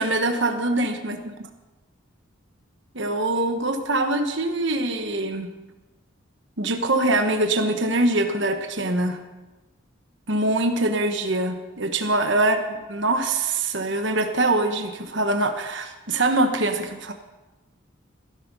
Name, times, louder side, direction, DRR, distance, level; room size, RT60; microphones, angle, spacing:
voice 1, 0.0-1.3 2.9-5.5 6.6-9.2 10.3-17.1, right 2 dB, 60° right, 6 dB, 1.2 m, -23 dB
16.0 x 11.0 x 5.4 m, 1.1 s
head